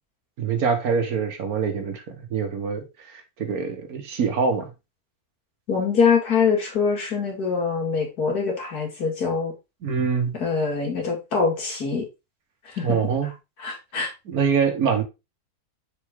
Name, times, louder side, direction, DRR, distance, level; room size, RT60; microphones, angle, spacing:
voice 1, 0.4-4.7 9.8-10.3 12.8-13.3 14.3-15.0, right 6 dB, 75° right, 1.7 m, -24 dB
voice 2, 5.7-9.5 10.4-12.1 12.7-13.0 13.6-14.1, left 5 dB, 90° left, 2.7 m, -24 dB
6.7 x 4.5 x 3.6 m
omnidirectional pair, 1.6 m